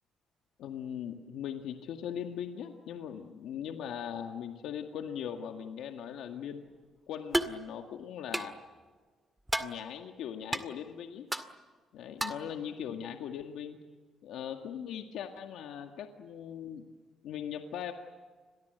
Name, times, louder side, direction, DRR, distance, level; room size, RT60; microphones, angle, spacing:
voice 1, 0.6-6.6 7.1-8.6 9.6-11.3 11.9-13.8 14.2-16.8 17.2-17.9, left 9 dB, 85° left, 4 dB, 1.9 m, -40 dB
sound 1, 7.3-7.6 8.3-8.5 9.5-9.7 10.5-10.6 11.3-11.5 12.2-12.5, right 1 dB, 5° right, 2.0 m, -31 dB
30.0 x 23.0 x 8.1 m, 1.4 s
cardioid pair, 90°, 0 cm